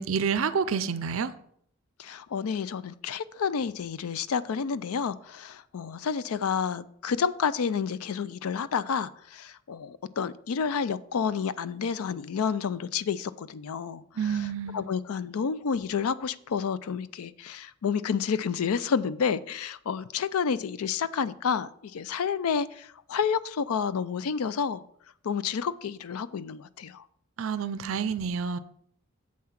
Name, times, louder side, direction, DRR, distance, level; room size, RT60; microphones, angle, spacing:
voice 1, 0.0-1.3 14.2-14.9 27.4-28.6, right 6 dB, 70° right, 0.5 m, -28 dB
voice 2, 2.0-24.8 25.2-27.1, left 6 dB, 90° left, 0.4 m, -30 dB
7.5 x 5.7 x 5.8 m
head